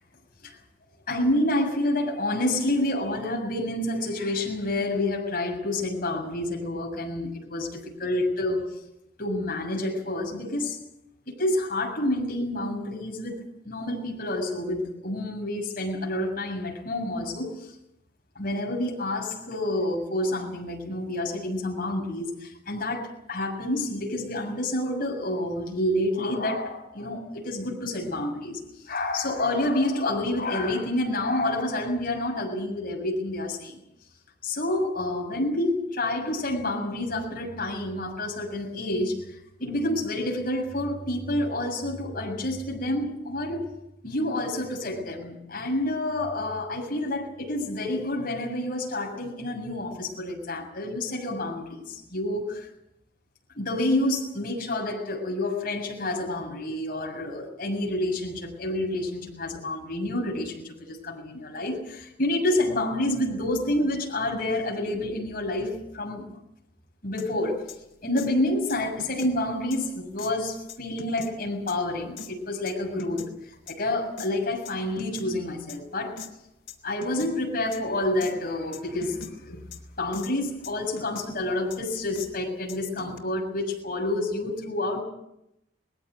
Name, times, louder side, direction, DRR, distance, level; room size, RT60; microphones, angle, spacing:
voice 1, 1.1-8.7 9.2-10.8 11.3-17.7 18.4-28.6 28.8-33.8 34.4-43.8 44.0-52.7 53.5-66.3 67.0-67.6 68.0-73.3 73.7-76.3 76.8-79.6 80.0-85.0, left 1 dB, 45° left, -1 dB, 7.1 m, -28 dB
sound 1, 67.2-67.3 67.7-67.8 68.2-68.3 68.7-69.3 69.7-69.8 70.2-70.3 70.7-71.3 71.7-71.8 72.2-72.3 72.7-73.3 73.7-73.8 74.2-74.3 74.6-75.3 75.7-75.8 76.2-76.3 76.7-76.8 77.0-77.3 77.7-77.8 78.2-78.3 78.7-79.3 79.7-79.8 80.1-80.3 80.6-81.3 81.7-81.8 82.1-82.3 82.7-83.2, left 5 dB, 75° left, 3.7 m, -40 dB
21.0 x 17.0 x 9.5 m, 0.83 s
head